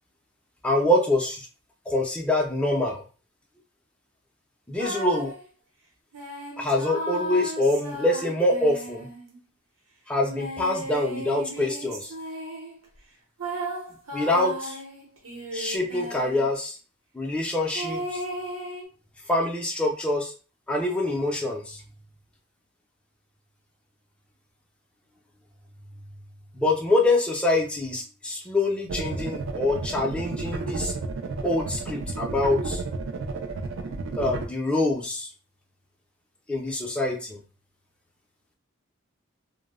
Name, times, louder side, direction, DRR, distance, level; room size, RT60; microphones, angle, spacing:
voice 1, 0.6-1.5 1.9-3.0 4.7-5.3 6.6-9.1 10.1-12.1 14.1-14.8 15.5-16.8 17.1-18.2 19.3-20.3 20.7-21.8 26.6-30.9 31.4-32.8 34.2-35.3 36.5-37.4, left 2 dB, 5° left, 0 dB, 0.4 m, -25 dB
sound 1, 4.8-5.4 6.1-9.4 10.2-12.8 13.4-16.5 17.7-18.8, equal, 85° right, 0.8 m, -35 dB
sound 2, 28.9-34.4, right 3 dB, 65° right, 0.4 m, -32 dB
2.0 x 2.0 x 3.5 m, 0.36 s
head